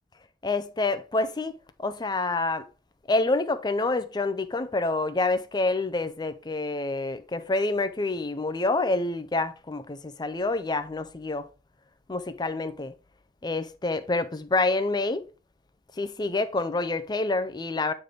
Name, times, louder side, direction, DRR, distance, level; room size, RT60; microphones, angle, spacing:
voice 1, 0.4-2.7 3.1-11.5 12.1-12.9 13.4-15.3 16.0-17.9, left 2 dB, 25° left, 0.5 m, -27 dB
8.5 x 3.3 x 3.8 m
head